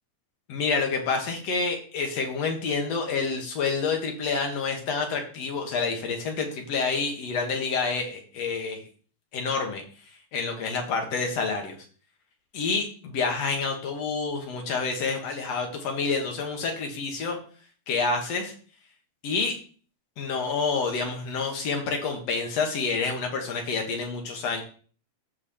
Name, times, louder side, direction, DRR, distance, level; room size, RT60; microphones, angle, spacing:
voice 1, 0.5-8.8 9.3-9.8 10.3-11.8 12.5-17.4 17.9-18.5 19.2-19.5 20.2-24.6, left 4 dB, 60° left, 3 dB, 2.2 m, -28 dB
14.0 x 4.8 x 2.9 m, 0.42 s
omnidirectional pair, 3.7 m